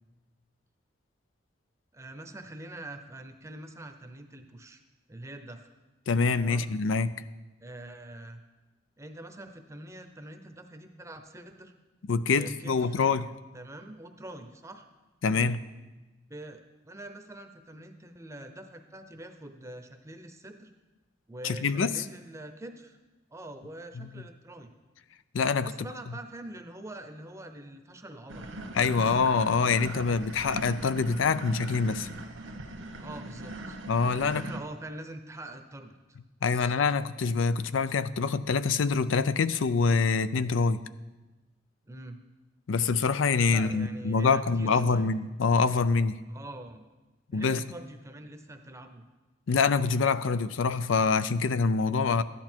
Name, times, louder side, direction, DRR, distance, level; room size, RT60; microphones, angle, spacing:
voice 1, 1.9-4.8 5.1-5.7 6.4-6.7 7.6-8.4 9.0-11.7 12.2-13.0 13.5-14.9 15.3-15.5 16.3-20.7 21.3-23.0 23.3-24.7 25.6-28.5 28.8-29.1 33.0-36.2 36.4-36.7 41.9-42.2 43.5-45.1 46.3-46.9 47.3-49.0, right 1 dB, 15° right, 7 dB, 0.7 m, -44 dB
voice 2, 6.1-7.2 12.1-13.3 15.2-15.6 21.4-22.0 24.0-24.1 25.3-25.7 28.7-32.1 33.9-34.4 36.4-40.8 42.7-46.2 47.3-47.6 49.5-52.2, left 4 dB, 80° left, 14 dB, 0.5 m, -25 dB
sound 1, 28.3-34.6, right 2 dB, 80° right, 1.2 m, -40 dB
13.0 x 10.5 x 4.5 m, 1.1 s
head